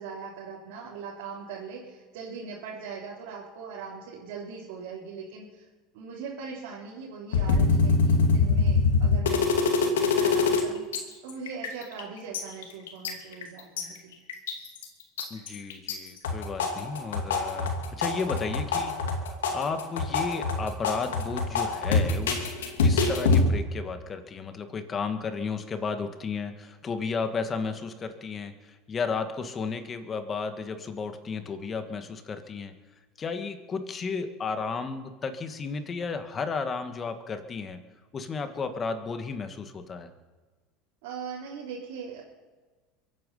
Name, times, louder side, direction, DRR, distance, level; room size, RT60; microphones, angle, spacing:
voice 1, 0.0-5.7 5.9-14.1 41.0-42.2, right 5 dB, 75° right, -6 dB, 3.7 m, -40 dB
sound 1, 7.3-10.6 10.9-11.0 11.3-12.0 12.3-13.8 14.3-14.8 15.2-15.9 16.2-23.4, left 4 dB, 90° left, 2.5 m, -24 dB
voice 2, 15.3-18.9 19.5-22.4 22.8-32.7 33.2-37.8 38.1-40.1, left 5 dB, 30° left, 8 dB, 2.0 m, -33 dB
23.5 x 9.5 x 5.7 m, 1.3 s
hypercardioid pair, 100°, 0 cm